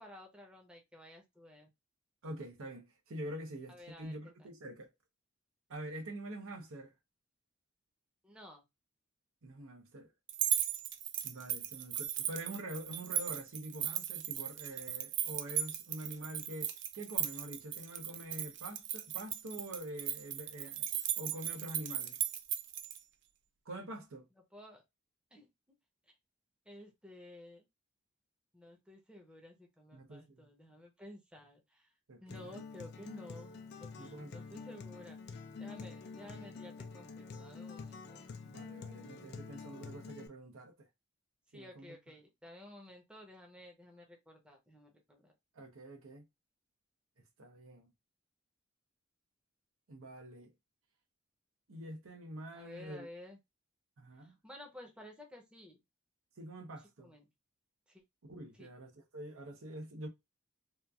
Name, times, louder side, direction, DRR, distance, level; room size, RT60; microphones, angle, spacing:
voice 1, 0.0-1.7 3.7-4.5 8.2-8.6 24.5-24.8 25.3-25.5 26.1-26.2 26.7-27.7 28.5-31.9 32.2-33.5 33.8-38.2 41.5-45.3 52.5-53.4 54.2-55.8 56.8-57.3 57.9-58.0 58.5-58.7, left 1 dB, 5° right, 0.6 m, -53 dB
voice 2, 2.2-4.9 5.7-6.9 9.4-10.1 11.2-20.9 21.2-22.2 23.7-24.3 29.9-30.5 32.1-32.6 34.0-34.4 38.4-40.9 41.5-42.0 45.5-46.2 47.4-47.9 49.9-50.5 51.7-53.1 54.0-54.4 56.4-57.1 58.2-60.1, right 1 dB, 85° right, 0.7 m, -46 dB
sound 1, 10.3-23.0, right 10 dB, 60° right, 0.4 m, -37 dB
Acoustic guitar, 32.3-40.3, left 4 dB, 50° left, 0.4 m, -47 dB
2.9 x 2.4 x 2.2 m
head